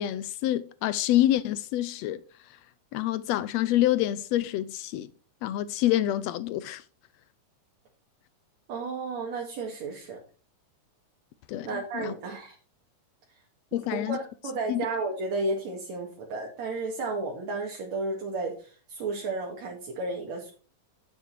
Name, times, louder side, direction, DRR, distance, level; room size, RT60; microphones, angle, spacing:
voice 1, 0.0-2.2 2.9-5.1 5.4-6.8 11.5-12.1 13.7-14.2 14.7-14.8, left 13 dB, 80° left, 1.5 m, -27 dB
voice 2, 8.7-10.2 11.6-12.6 13.7-14.2 14.4-20.5, right 3 dB, 60° right, 3.1 m, -33 dB
9.6 x 8.3 x 4.6 m
omnidirectional pair, 3.6 m